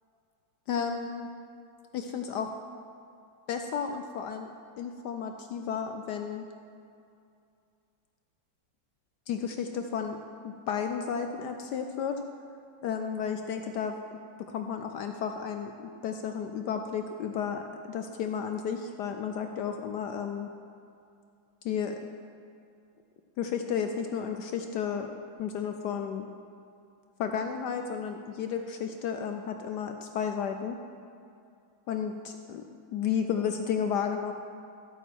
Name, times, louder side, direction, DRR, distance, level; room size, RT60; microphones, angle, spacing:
voice 1, 0.7-1.3 1.9-2.5 3.5-4.5 4.8-6.4 9.3-10.2 10.4-12.2 12.8-14.0 14.5-15.7 16.0-20.5 21.6-21.9 23.4-25.1 25.4-26.3 27.2-30.8 31.9-32.6 32.9-34.3, left 7 dB, 70° left, 5 dB, 1.1 m, -32 dB
13.5 x 8.6 x 4.6 m, 2.5 s
omnidirectional pair, 2.1 m